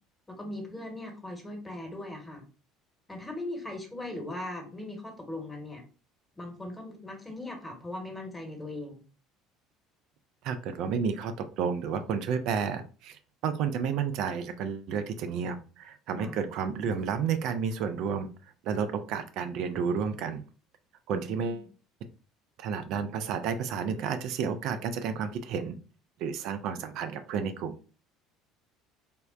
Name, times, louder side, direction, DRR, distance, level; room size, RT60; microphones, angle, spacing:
voice 1, 0.4-2.4 3.1-5.8 6.4-9.0 16.2-16.4 21.1-21.7, left 1 dB, 15° left, 2 dB, 1.0 m, -39 dB
voice 2, 10.4-18.3 18.6-20.4 21.1-21.7 22.6-25.8 26.2-27.7, right 6 dB, 55° right, 8 dB, 0.3 m, -31 dB
3.4 x 2.1 x 2.4 m, 0.36 s
figure-of-eight pair, 60°, 0 cm